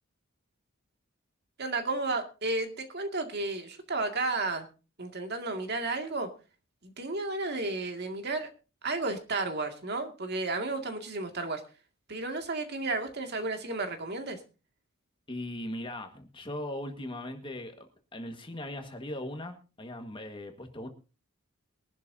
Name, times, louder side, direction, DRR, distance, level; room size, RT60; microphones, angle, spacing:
voice 1, 1.6-4.7 5.0-6.3 6.8-8.5 8.8-11.6 12.1-14.4, right 3 dB, 50° right, 5 dB, 2.2 m, -32 dB
voice 2, 15.3-20.9, left 1 dB, 25° left, 5 dB, 1.7 m, -39 dB
22.0 x 11.5 x 2.8 m, 0.32 s
head